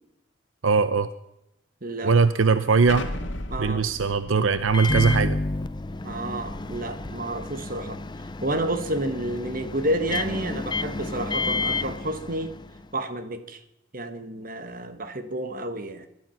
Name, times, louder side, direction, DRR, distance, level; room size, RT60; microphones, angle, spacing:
voice 1, 0.6-1.1 2.0-3.1 3.6-5.4, right 5 dB, 70° right, 0.7 m, -20 dB
voice 2, 1.8-2.1 3.5-3.8 6.0-8.0 8.4-12.5 12.9-13.6 13.9-16.1, right 1 dB, 45° right, 1.5 m, -30 dB
Explosion, 2.9-7.6, left 1 dB, 60° left, 2.0 m, -38 dB
Microwave oven, 4.7-12.9, left 3 dB, 20° left, 0.5 m, -31 dB
20.0 x 12.5 x 5.8 m
head